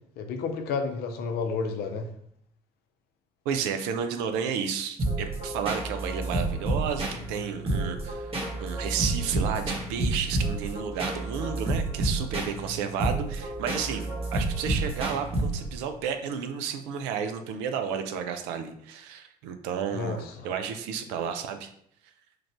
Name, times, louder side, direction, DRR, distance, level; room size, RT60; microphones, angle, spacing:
voice 1, 0.2-2.1 19.9-20.5, left 4 dB, 55° left, 6 dB, 0.6 m, -31 dB
voice 2, 3.5-8.3 8.6-21.7, right 7 dB, 65° right, 7 dB, 0.4 m, -32 dB
sound 1, 5.0-15.9, right 2 dB, 30° right, 1.2 m, -30 dB
3.2 x 2.5 x 3.2 m, 0.68 s
figure-of-eight pair, 50°, 19 cm